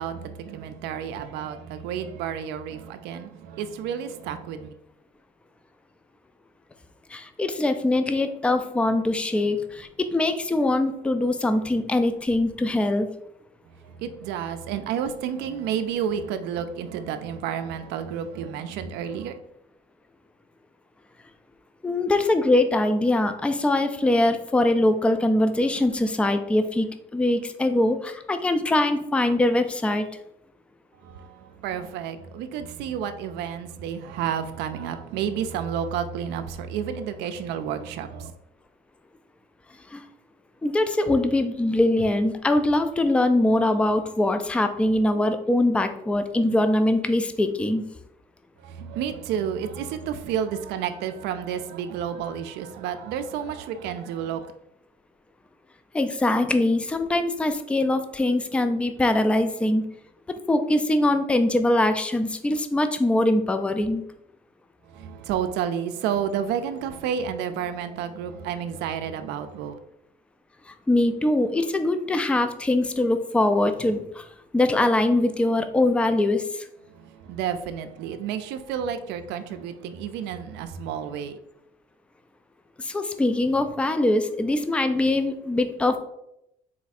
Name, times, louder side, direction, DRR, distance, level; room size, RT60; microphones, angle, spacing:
voice 1, 0.0-4.7 13.7-19.4 31.0-38.3 48.6-54.5 64.8-69.8 76.9-81.4, right 8 dB, 85° right, 0.4 m, -31 dB
voice 2, 7.1-13.1 21.8-26.9 27.1-30.1 39.9-40.0 40.6-47.8 55.9-59.8 60.5-64.0 70.7-74.3 74.5-76.7 82.8-86.0, left 1 dB, 5° left, 0.3 m, -22 dB
4.2 x 2.4 x 4.1 m
cardioid pair, 110°, 17 cm